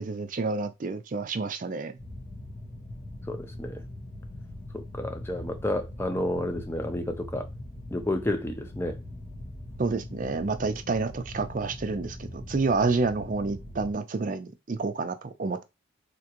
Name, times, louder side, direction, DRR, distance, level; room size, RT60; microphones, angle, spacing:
voice 1, 0.0-2.0 9.8-15.6, right 3 dB, 40° right, 0.4 m, -29 dB
sound 1, 2.0-13.9, left 1 dB, 70° left, 1.3 m, -41 dB
voice 2, 3.3-3.8 4.7-7.5 7.9-9.0, left 1 dB, 10° left, 0.5 m, -31 dB
3.4 x 2.9 x 2.9 m
head